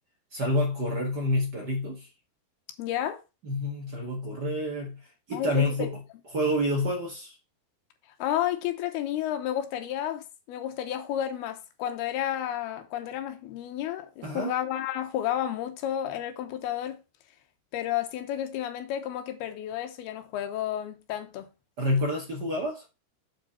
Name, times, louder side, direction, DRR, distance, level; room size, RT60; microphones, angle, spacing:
voice 1, 0.3-2.1 3.4-5.0 5.3-6.0 6.3-7.3 14.2-14.5 21.8-22.8, left 1 dB, 50° right, 1.2 m, -28 dB
voice 2, 2.8-3.2 5.3-5.9 8.2-17.0 17.7-21.5, left 11 dB, 90° left, 2.9 m, -31 dB
7.4 x 5.2 x 5.7 m
omnidirectional pair, 4.5 m